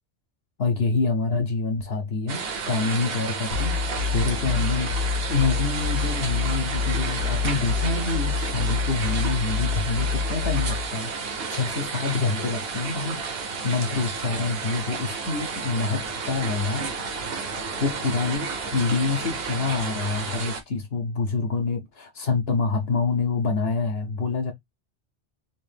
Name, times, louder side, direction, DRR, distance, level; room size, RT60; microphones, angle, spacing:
voice 1, 0.6-3.8 4.1-11.1 11.5-13.2 13.6-16.9 17.8-24.5, left 4 dB, 60° left, 1.0 m, -26 dB
sound 1, 2.3-20.6, right 5 dB, 60° right, 1.0 m, -32 dB
sound 2, 3.5-10.9, left 6 dB, 90° left, 1.5 m, -27 dB
4.1 x 2.6 x 3.3 m
omnidirectional pair, 1.2 m